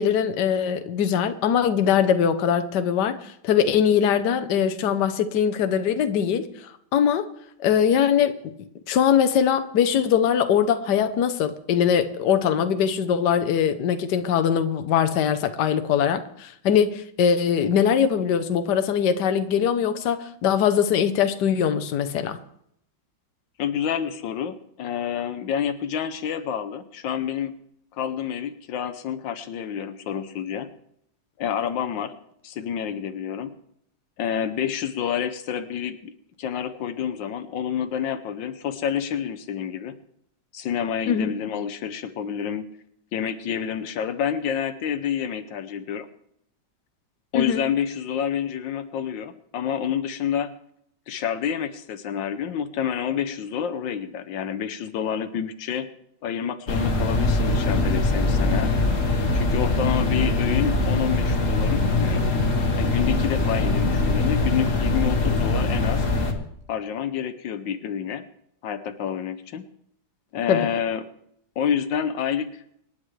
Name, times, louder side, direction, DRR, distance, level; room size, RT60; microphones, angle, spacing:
voice 1, 0.0-6.5 6.9-7.3 7.6-8.4 8.9-22.4 41.1-41.3 47.3-47.6 70.5-70.7, left 8 dB, 70° left, 1.5 m, -22 dB
voice 2, 23.6-27.5 27.9-30.7 31.4-32.1 32.4-33.5 34.2-40.0 40.5-42.6 43.1-46.1 47.3-50.5 51.1-55.9 56.2-58.7 59.3-62.3 62.8-66.1 66.7-68.2 68.6-69.6 70.3-71.1 71.6-72.6, left 8 dB, 85° left, 1.6 m, -28 dB
sound 1, 56.7-66.3, left 2 dB, 45° left, 1.9 m, -22 dB
26.0 x 10.5 x 3.2 m
omnidirectional pair, 2.0 m